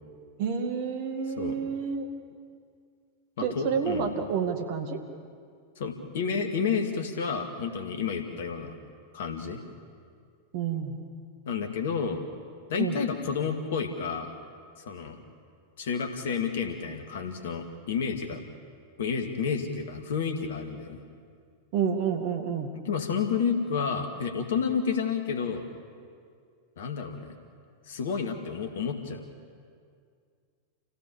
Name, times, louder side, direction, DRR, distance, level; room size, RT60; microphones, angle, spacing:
voice 1, 0.4-2.1 3.4-5.0 10.5-11.0 12.8-13.0 21.7-22.7, right 6 dB, 45° right, 5 dB, 2.2 m, -29 dB
voice 2, 3.4-4.1 5.8-8.8 9.1-9.6 11.5-12.2 12.7-14.3 14.9-15.2 15.8-18.4 19.0-21.0 22.8-25.7 26.8-27.4 27.9-29.2, left 6 dB, 60° left, 6 dB, 2.1 m, -30 dB
28.0 x 16.5 x 7.2 m, 2.2 s
figure-of-eight pair, 90°, 0 cm